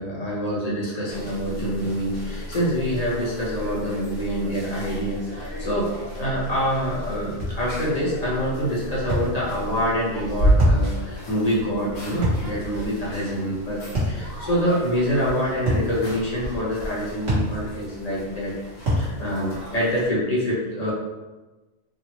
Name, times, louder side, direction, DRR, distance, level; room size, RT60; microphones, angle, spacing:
voice 1, 0.0-18.5 18.9-20.9, equal, 35° left, -6 dB, 0.9 m, -26 dB
sound 1, 1.1-20.1, right 1 dB, 70° left, 1.1 m, -31 dB
sound 2, 7.4-7.6 9.1-9.3 10.6-10.9 12.2-12.5 14.0-14.2 15.7-15.9 17.3-17.5 18.9-19.1, equal, 60° right, 1.3 m, -23 dB
3.6 x 2.0 x 2.9 m, 1.2 s
omnidirectional pair, 1.3 m